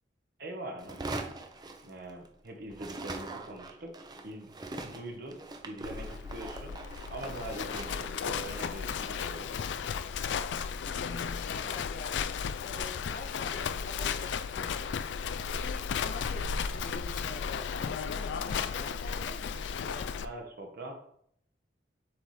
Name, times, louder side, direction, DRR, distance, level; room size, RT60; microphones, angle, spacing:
voice 1, 0.4-1.0 1.8-3.9 4.2-4.5 4.8-6.8 7.1-9.5 20.2-20.9, right 1 dB, 60° right, 1.0 m, -42 dB
sound 1, 0.8-2.4 2.7-9.9, right 2 dB, 25° right, 0.5 m, -43 dB
Livestock farm animals working animals, 5.8-20.3, left 6 dB, 80° left, 0.4 m, -34 dB
voice 2, 10.8-12.3 12.6-14.9 15.6-20.1, left 3 dB, 50° left, 0.7 m, -45 dB
7.4 x 4.1 x 3.2 m
head